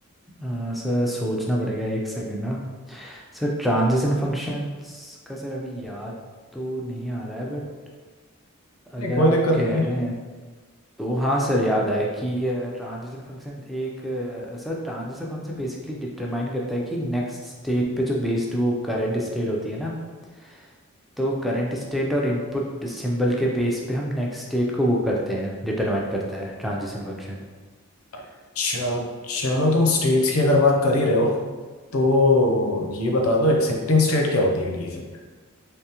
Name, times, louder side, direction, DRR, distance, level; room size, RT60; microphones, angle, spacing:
voice 1, 0.4-2.6 2.9-6.1 6.5-7.7 8.9-10.1 11.0-19.9 20.3-20.7 21.2-27.4, equal, ahead, -3 dB, 0.4 m, -26 dB
voice 2, 9.0-9.9 28.6-31.4 31.9-35.1, left 2 dB, 75° left, 1 dB, 0.6 m, -20 dB
3.5 x 3.2 x 2.9 m, 1.4 s
head